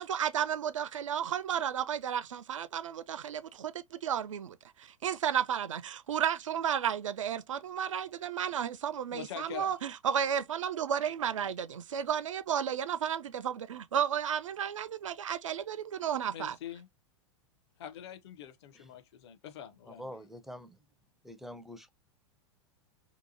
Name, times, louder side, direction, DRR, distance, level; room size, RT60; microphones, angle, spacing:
voice 1, 0.0-16.6, right 9 dB, 70° right, 0.4 m, -33 dB
voice 2, 9.1-9.7 16.3-16.9 17.8-20.1, left 10 dB, 55° left, 0.6 m, -44 dB
voice 3, 19.9-20.8 21.2-21.9, equal, ahead, 0.4 m, -45 dB
2.8 x 2.1 x 2.7 m
figure-of-eight pair, 95°, 17 cm